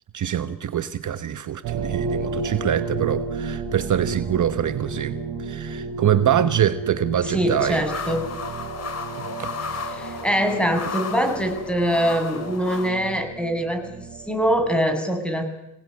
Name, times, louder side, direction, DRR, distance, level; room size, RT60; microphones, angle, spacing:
voice 1, 0.1-7.8 9.4-9.5, right 10 dB, 50° right, 11 dB, 1.2 m, -24 dB
sound 1, 1.6-14.8, right 4 dB, 85° right, 4.1 m, -32 dB
voice 2, 7.2-8.2 9.9-15.4, equal, 5° left, 6 dB, 7.4 m, -23 dB
sound 2, 7.6-12.9, left 5 dB, 40° left, 4.4 m, -34 dB
25.5 x 18.0 x 9.6 m, 0.82 s
cardioid pair, 85°, 38 cm